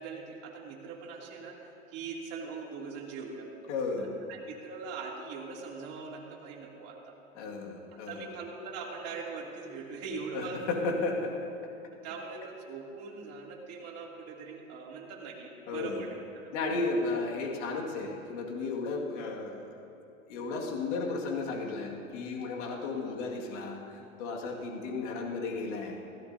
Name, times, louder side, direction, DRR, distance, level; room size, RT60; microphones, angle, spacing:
voice 1, 0.0-1.6 1.9-3.5 4.0-7.1 7.9-10.8 12.0-16.2 16.4-16.5 22.8-23.0, right 4 dB, 40° right, -2 dB, 2.9 m, -41 dB
voice 2, 3.7-4.2 7.4-8.3 10.3-11.6 15.7-16.0 16.5-19.8 20.3-26.0, left 3 dB, 60° left, -1 dB, 2.1 m, -34 dB
20.0 x 16.0 x 2.7 m, 2.7 s
hypercardioid pair, 125°, 40 cm